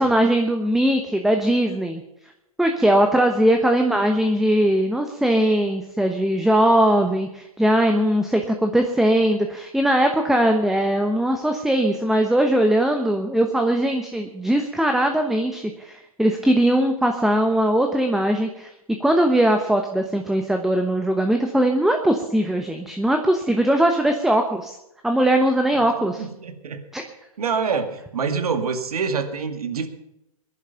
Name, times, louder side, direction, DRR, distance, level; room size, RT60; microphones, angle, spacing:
voice 1, 0.0-2.0 2.6-18.7 19.0-24.8 25.0-26.3 26.9-27.0, right 1 dB, ahead, 5 dB, 1.0 m, -20 dB
voice 2, 26.2-26.8 27.4-29.9, right 5 dB, 80° right, 8 dB, 2.2 m, -26 dB
19.5 x 11.0 x 5.8 m, 0.87 s
hypercardioid pair, 130°, 19 cm